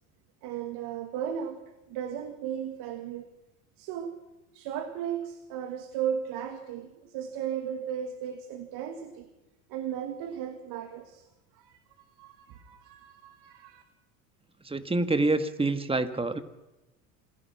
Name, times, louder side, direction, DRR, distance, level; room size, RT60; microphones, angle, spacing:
voice 1, 0.4-1.6 1.9-3.3 3.8-4.2 4.5-9.3 9.7-11.2 11.6-11.8 12.2-13.8, right 9 dB, 70° right, 7 dB, 2.2 m, -35 dB
voice 2, 14.6-16.4, right 2 dB, 15° right, 10 dB, 1.9 m, -26 dB
26.5 x 17.0 x 6.0 m, 1.0 s
supercardioid pair, 90°, 40 cm